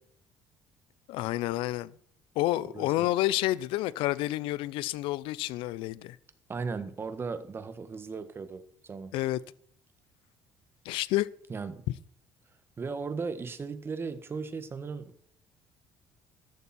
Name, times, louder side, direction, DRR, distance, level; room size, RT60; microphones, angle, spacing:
voice 1, 1.1-1.9 2.4-6.2 9.1-9.4 10.8-11.3, left 16 dB, 80° left, 0.7 m, -29 dB
voice 2, 2.6-3.1 6.5-9.1 11.5-11.8 12.8-15.2, right 4 dB, 25° right, 1.6 m, -37 dB
14.0 x 12.0 x 4.4 m
cardioid pair, 125°, 9 cm